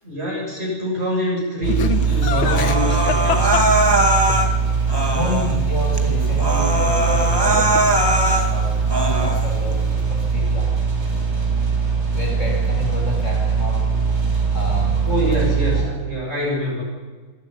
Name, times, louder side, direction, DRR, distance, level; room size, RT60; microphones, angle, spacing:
voice 1, 0.0-3.6 15.0-16.8, equal, 30° right, -4 dB, 7.5 m, -25 dB
sound 1, 1.6-15.8, right 5 dB, 70° right, 6.1 m, -21 dB
Laughter, 1.7-4.4 7.2-8.8, left 8 dB, 75° left, 2.0 m, -27 dB
Human voice, 2.4-4.5 4.9-5.5 6.0-6.1 6.4-8.5 8.9-9.5, right 1 dB, 10° right, 2.0 m, -20 dB
voice 2, 5.1-10.8 12.1-13.9 14.5-15.3 15.7-15.9, left 1 dB, 35° left, 0 dB, 7.6 m, -29 dB
27.0 x 12.5 x 9.9 m, 1.3 s
omnidirectional pair, 2.2 m